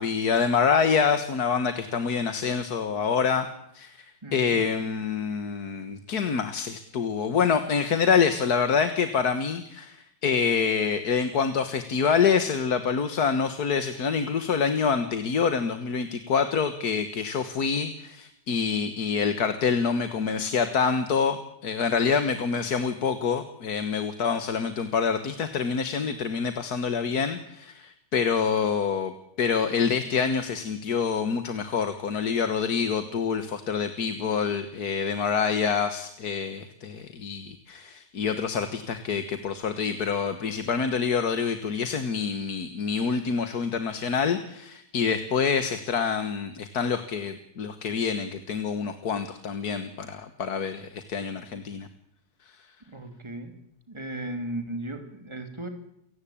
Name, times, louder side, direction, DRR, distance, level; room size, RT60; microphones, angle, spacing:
voice 1, 0.0-3.5 3.7-4.1 4.3-29.1 29.4-51.9, left 6 dB, 85° left, 10 dB, 2.0 m, -26 dB
voice 2, 4.2-4.6 52.9-53.5 53.9-55.7, right 1 dB, 20° right, 6 dB, 3.0 m, -36 dB
29.5 x 17.5 x 8.7 m, 0.77 s
omnidirectional pair, 1.6 m